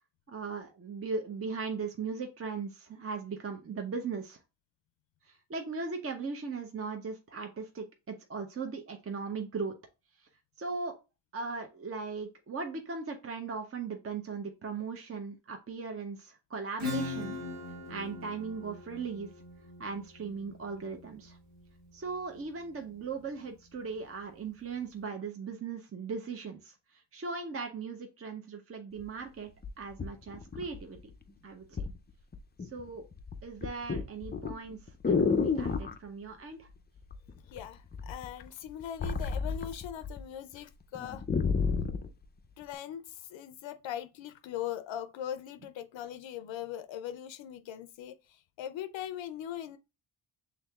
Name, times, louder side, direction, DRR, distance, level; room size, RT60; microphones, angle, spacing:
voice 1, 0.3-4.4 5.3-9.7 10.6-10.9 11.3-17.4 17.9-19.3 19.8-21.4 21.9-29.5 29.8-31.0 31.4-31.8 32.7-33.1 33.4-36.7, right 4 dB, 30° right, 0.7 m, -38 dB
Acoustic guitar / Strum, 16.8-22.2, left 3 dB, 60° right, 2.0 m, -40 dB
sound 1, 29.0-29.1 29.6-31.1 31.8-32.0 32.3-32.8 33.1-36.0 37.1-37.6 37.9-40.2 40.5-40.6 40.9-42.1 42.7-42.8, left 5 dB, 20° left, 0.4 m, -31 dB
voice 2, 37.5-41.2 42.6-49.8, left 11 dB, 75° left, 0.5 m, -40 dB
6.2 x 3.5 x 2.3 m
cardioid pair, 85°, 46 cm